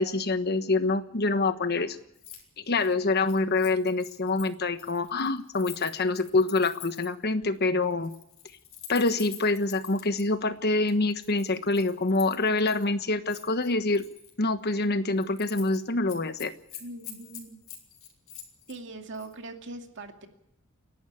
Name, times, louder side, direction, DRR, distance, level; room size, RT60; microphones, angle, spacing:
voice 1, 0.0-2.0 2.6-8.1 8.9-14.0 14.4-16.5, left 3 dB, 50° left, 10 dB, 1.3 m, -26 dB
Keys jangling, 2.1-2.4 2.7-7.2 7.9-10.2 10.9-12.9 13.3-14.3 14.7-14.9 15.2-15.8 16.1-18.8 19.1-19.3, left 11 dB, 70° left, 4.7 m, -46 dB
voice 2, 16.8-17.6 18.7-20.3, right 2 dB, 60° right, 4 dB, 2.4 m, -41 dB
29.5 x 11.5 x 8.5 m, 0.79 s
head